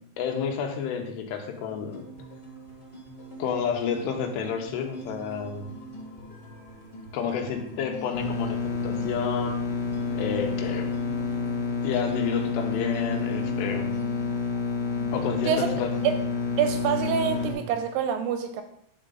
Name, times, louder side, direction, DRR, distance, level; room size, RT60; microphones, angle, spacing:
voice 1, 0.2-2.1 3.4-5.7 7.1-9.6 10.1-10.9 11.8-13.9 15.1-15.9, left 7 dB, 80° left, 3 dB, 3.0 m, -30 dB
sound 1, 1.7-17.7, right 1 dB, 15° left, 2.0 m, -43 dB
sound 2, 8.1-17.5, left 5 dB, 65° left, 2.6 m, -29 dB
voice 2, 16.6-18.6, right 8 dB, 80° right, 8 dB, 2.4 m, -26 dB
11.0 x 4.2 x 3.8 m, 0.74 s
omnidirectional pair, 4.9 m